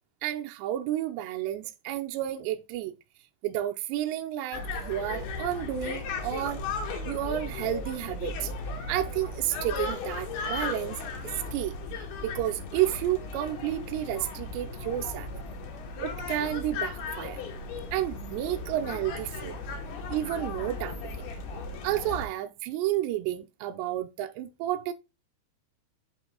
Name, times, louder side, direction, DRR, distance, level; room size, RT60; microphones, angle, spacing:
voice 1, 0.2-2.9 3.4-6.6 7.1-8.5 8.9-11.0 11.5-11.7 12.2-15.3 16.0-17.4 17.9-19.6 20.1-21.2 21.8-24.9, right 12 dB, 80° right, 2.6 m, -31 dB
sound 1, 4.5-22.3, left 3 dB, 65° left, 3.5 m, -36 dB
8.0 x 4.9 x 3.8 m
omnidirectional pair, 5.3 m